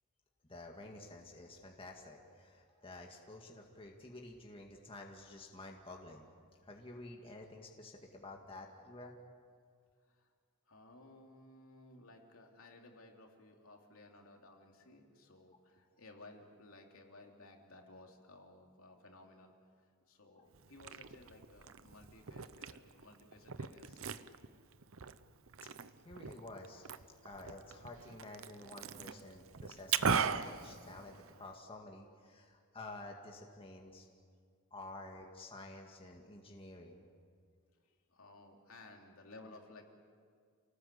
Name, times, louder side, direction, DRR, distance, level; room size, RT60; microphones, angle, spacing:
voice 1, 0.5-6.3 6.6-9.2 20.3-20.5 25.6-25.7 26.1-26.9 27.2-34.1 34.7-37.0, left 2 dB, 25° left, 1 dB, 2.0 m, -51 dB
voice 2, 10.7-19.5 20.1-24.1 37.8-39.9, left 2 dB, 70° left, 1 dB, 3.3 m, -57 dB
Liquid, 20.5-31.5, right 6 dB, 65° right, 0.8 m, -40 dB
28.5 x 19.0 x 8.5 m, 2.1 s
head